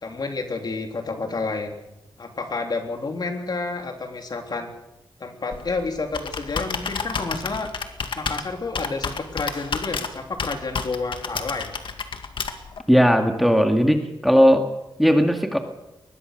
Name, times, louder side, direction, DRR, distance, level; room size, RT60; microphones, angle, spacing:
voice 1, 0.0-1.7 2.2-4.7 5.2-7.7 8.2-11.7, left 3 dB, 50° left, 4 dB, 3.5 m, -30 dB
Computer keyboard, 5.5-12.8, left 5 dB, 70° left, 2.1 m, -31 dB
voice 2, 12.9-14.7 15.0-15.6, equal, ahead, 5 dB, 2.1 m, -17 dB
22.5 x 20.5 x 6.7 m, 0.94 s
wide cardioid pair, 95°, 9 cm